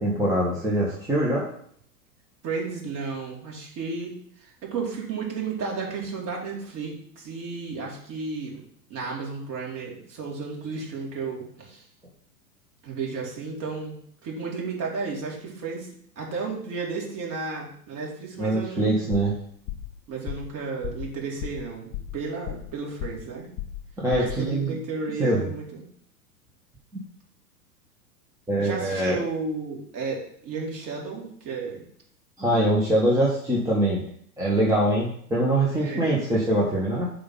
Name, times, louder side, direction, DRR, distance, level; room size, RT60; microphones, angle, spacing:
voice 1, 0.0-1.5 18.4-19.3 24.0-24.8 25.2-25.4 28.5-29.2 32.4-34.0 34.4-37.1, right 1 dB, 5° right, -6 dB, 1.3 m, -23 dB
voice 2, 2.4-8.6 8.9-11.8 12.8-15.9 16.2-19.0 20.1-23.5 24.1-25.8 28.6-31.8 34.5-35.0 35.8-36.1, right 4 dB, 35° right, -2 dB, 2.7 m, -33 dB
sound 1, 19.1-19.4 19.7-19.9 20.3-20.5 20.8-21.1 21.4-21.7 21.9-22.7 23.0-23.3 23.6-23.9 24.1-24.4, left 13 dB, 30° left, 0.9 m, -34 dB
8.5 x 2.9 x 5.4 m, 0.64 s
figure-of-eight pair, 100°, 48 cm